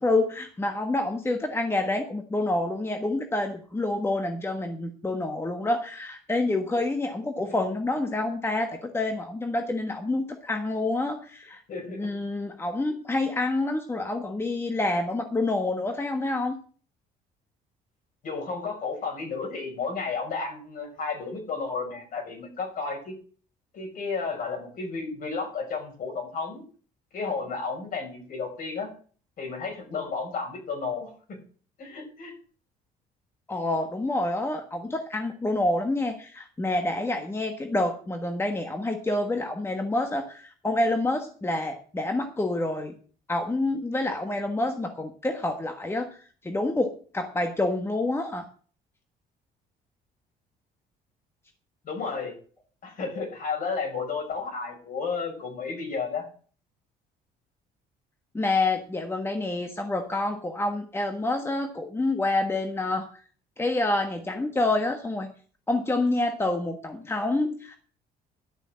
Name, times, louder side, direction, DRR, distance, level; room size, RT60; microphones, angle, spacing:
voice 1, 0.0-11.6 11.9-16.6 33.5-42.9 43.3-48.4 58.3-63.2 63.6-65.3 65.7-67.8, left 2 dB, 15° left, 5 dB, 1.5 m, -27 dB
voice 2, 11.7-12.1 18.2-23.1 23.7-26.6 27.1-28.9 29.4-31.1 31.8-32.3 51.8-52.3 52.8-56.2, left 4 dB, 55° left, 2 dB, 5.8 m, -32 dB
12.0 x 6.5 x 7.6 m, 0.42 s
cardioid pair, 110°, 17 cm